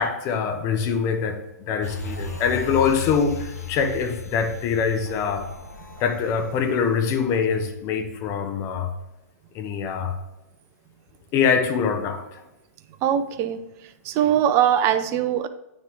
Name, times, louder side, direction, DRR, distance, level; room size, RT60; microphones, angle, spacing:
voice 1, 0.0-1.4 1.7-5.5 6.0-8.9 9.5-10.1 11.3-12.4, left 6 dB, 30° left, 6 dB, 0.9 m, -24 dB
sound 1, 1.8-7.4 7.8-7.9, left 5 dB, 70° left, 0.9 m, -36 dB
voice 2, 13.0-15.5, right 10 dB, 30° right, 12 dB, 0.4 m, -22 dB
9.4 x 3.2 x 3.4 m, 0.96 s
hypercardioid pair, 120°, 9 cm